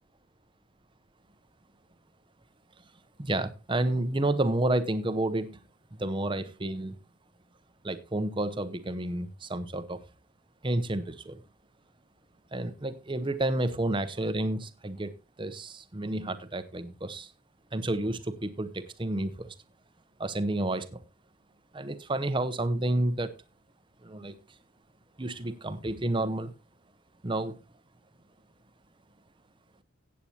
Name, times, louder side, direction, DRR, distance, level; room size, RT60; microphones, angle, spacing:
voice 1, 3.2-5.6 5.9-6.9 7.8-10.0 10.6-11.4 12.5-15.1 15.4-17.3 17.7-19.5 20.2-21.0 21.7-23.3 24.0-24.3 25.2-26.5 27.2-27.6, right 1 dB, 25° right, 12 dB, 0.8 m, -30 dB
15.5 x 8.5 x 2.9 m, 0.26 s
head